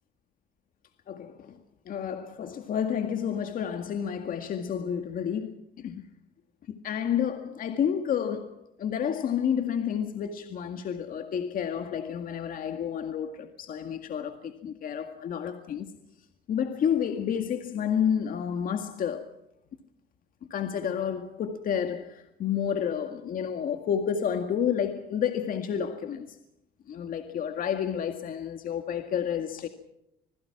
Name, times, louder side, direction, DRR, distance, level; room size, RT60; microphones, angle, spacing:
voice 1, 1.1-1.6 1.9-6.0 6.7-15.9 16.5-19.3 20.5-26.4 26.9-29.7, left 8 dB, 55° left, 2.0 m, -30 dB
26.0 x 21.0 x 6.0 m
cardioid pair, 110°, 17 cm